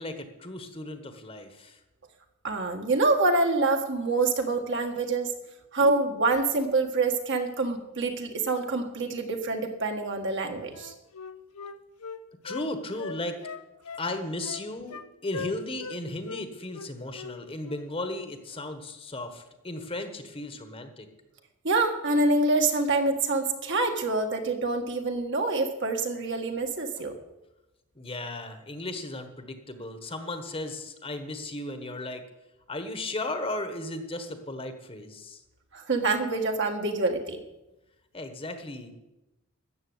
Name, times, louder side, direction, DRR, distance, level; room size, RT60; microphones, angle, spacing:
voice 1, 0.0-1.8 12.4-13.4 14.0-21.1 27.9-32.2 32.7-35.4 38.1-38.9, left 2 dB, 25° left, 7 dB, 1.3 m, -35 dB
voice 2, 2.4-5.3 5.7-10.9 21.6-27.2 35.7-37.4, right 3 dB, 55° right, 4 dB, 1.8 m, -26 dB
Wind instrument woodwind instrument, 10.7-12.7 13.0-14.1 14.4-15.1 15.3-16.0 16.2-16.4 16.7-17.4 17.6-17.8, left 5 dB, 80° left, 0.9 m, -40 dB
13.5 x 7.7 x 9.6 m, 0.98 s
head